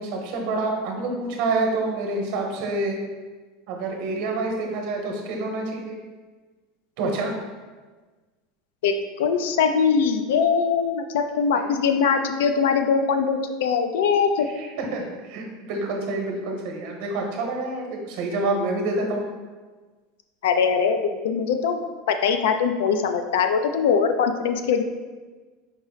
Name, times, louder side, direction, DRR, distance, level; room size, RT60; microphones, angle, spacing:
voice 1, 0.0-3.0 3.7-6.0 7.0-7.3 11.5-11.7 14.6-19.3, right 2 dB, 60° right, 1 dB, 0.9 m, -27 dB
voice 2, 8.8-14.5 20.4-21.8 22.1-24.8, left 6 dB, 90° left, 7 dB, 0.4 m, -22 dB
5.2 x 2.0 x 3.9 m, 1.3 s
supercardioid pair, 145°, 0 cm